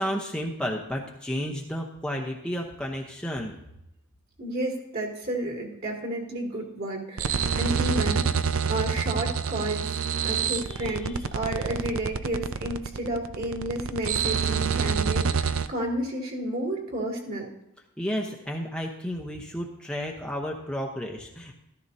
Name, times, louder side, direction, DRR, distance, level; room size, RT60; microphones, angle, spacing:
voice 1, 0.0-3.6 10.7-11.1 18.0-21.5, equal, 5° left, 0 dB, 0.9 m, -32 dB
voice 2, 4.4-8.4 8.7-9.8 10.2-17.5, right 1 dB, 45° right, -1 dB, 2.7 m, -31 dB
sound 1, 7.2-15.7, right 6 dB, 65° right, 0.5 m, -27 dB
14.0 x 13.5 x 2.8 m, 0.84 s
head